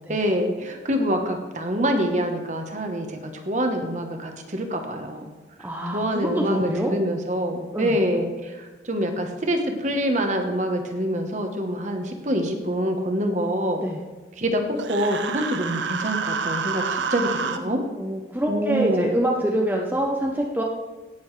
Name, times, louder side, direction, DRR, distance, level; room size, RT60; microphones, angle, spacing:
voice 1, 0.1-5.3 5.9-8.6 8.9-13.8 14.4-17.8 18.5-19.2, equal, 40° right, 4 dB, 1.2 m, -25 dB
voice 2, 5.6-6.9 7.7-8.0 13.8-14.0 18.0-20.6, right 1 dB, 10° right, -1 dB, 0.7 m, -25 dB
Human voice, 14.8-17.6, right 5 dB, 80° right, 0.7 m, -28 dB
17.0 x 7.0 x 3.3 m, 1.3 s
head